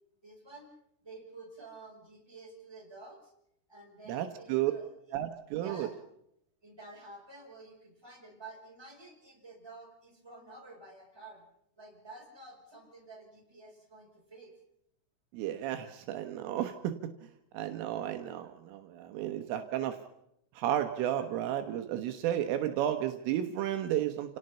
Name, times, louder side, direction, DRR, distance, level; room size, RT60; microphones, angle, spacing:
voice 1, 0.2-0.7 1.0-3.3 3.7-5.2 5.6-5.9 6.6-11.4 11.8-14.5, right 3 dB, 5° right, -1 dB, 6.6 m, -50 dB
voice 2, 4.1-4.7 5.1-5.9 15.3-17.1 17.5-20.0 20.6-24.4, right 11 dB, 75° right, 7 dB, 3.6 m, -32 dB
29.5 x 18.5 x 5.6 m, 0.77 s
omnidirectional pair, 6.0 m